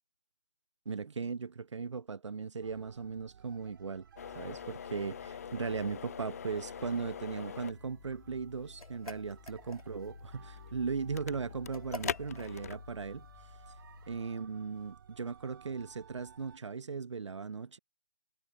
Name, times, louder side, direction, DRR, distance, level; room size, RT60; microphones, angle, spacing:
voice 1, 0.8-4.0 4.3-13.3 14.1-17.8, right 5 dB, 55° right, 1.1 m, -38 dB
sound 1, 2.6-16.6, right 8 dB, 40° right, 4.5 m, -58 dB
sound 2, 4.2-14.2, left 8 dB, 25° left, 0.6 m, -45 dB
sound 3, 8.8-10.1 11.7-12.6, left 2 dB, 80° left, 1.5 m, -45 dB
figure-of-eight pair, 150°, 18 cm